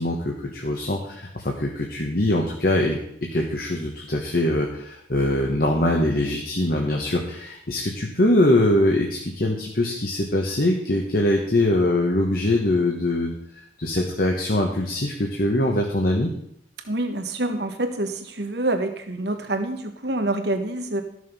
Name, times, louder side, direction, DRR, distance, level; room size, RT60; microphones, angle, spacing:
voice 1, 0.0-16.3, left 1 dB, 50° left, 1 dB, 1.2 m, -23 dB
voice 2, 16.9-21.0, right 2 dB, 65° right, 7 dB, 1.3 m, -26 dB
13.5 x 6.4 x 5.5 m, 0.73 s
head